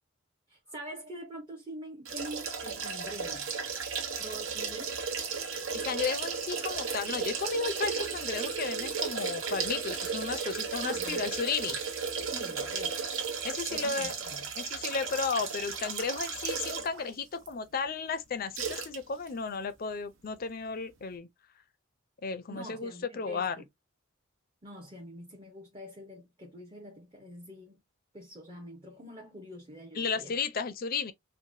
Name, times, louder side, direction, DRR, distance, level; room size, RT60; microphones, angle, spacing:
voice 1, 0.5-3.5 4.2-5.1 10.8-11.3 12.2-13.1 13.7-14.5 22.5-23.6 24.6-27.8 28.1-30.3, right 1 dB, 25° right, 0.7 m, -45 dB
sound 1, 2.1-17.0 17.5-17.6 18.6-19.0 19.3-19.4, right 5 dB, 75° right, 1.0 m, -34 dB
voice 2, 5.7-11.8 13.4-14.1 14.6-21.3 22.2-23.6 29.9-31.1, left 5 dB, 45° left, 0.5 m, -34 dB
4.6 x 2.1 x 2.6 m
head